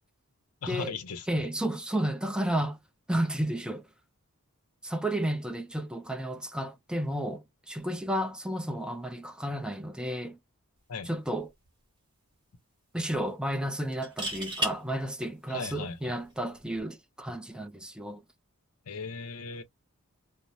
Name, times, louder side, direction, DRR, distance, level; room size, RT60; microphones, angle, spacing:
voice 1, 0.6-1.5 10.9-11.1 15.5-16.1 18.9-19.6, left 4 dB, 70° left, 0.6 m, -37 dB
voice 2, 1.3-2.8 3.1-3.8 4.8-10.4 11.1-11.5 12.9-18.2, right 1 dB, 5° right, 0.5 m, -32 dB
sound 1, 11.1-11.3 11.7-11.8 13.9-14.8 16.6-16.8, equal, 20° right, 1.4 m, -32 dB
3.1 x 2.0 x 2.6 m
head